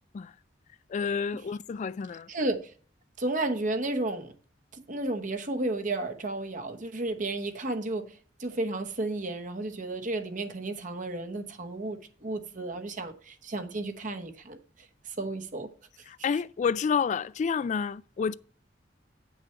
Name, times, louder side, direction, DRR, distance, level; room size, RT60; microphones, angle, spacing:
voice 1, 0.9-2.3 16.1-18.3, left 6 dB, 40° left, 0.3 m, -29 dB
voice 2, 2.3-2.6 3.2-4.3 4.9-8.1 8.4-14.6 15.2-15.7, right 2 dB, 45° right, 1.1 m, -32 dB
9.1 x 6.2 x 4.5 m
head